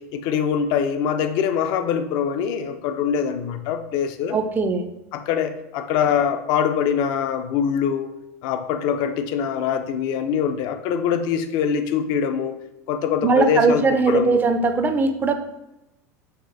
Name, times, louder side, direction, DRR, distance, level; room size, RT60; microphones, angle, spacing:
voice 1, 0.0-4.4 5.1-8.2 8.4-12.5 12.9-14.4, left 7 dB, 55° left, 8 dB, 0.4 m, -23 dB
voice 2, 4.3-4.8 13.2-15.3, right 4 dB, 20° right, 8 dB, 0.4 m, -19 dB
4.1 x 2.5 x 2.6 m, 0.94 s
hypercardioid pair, 105°, 9 cm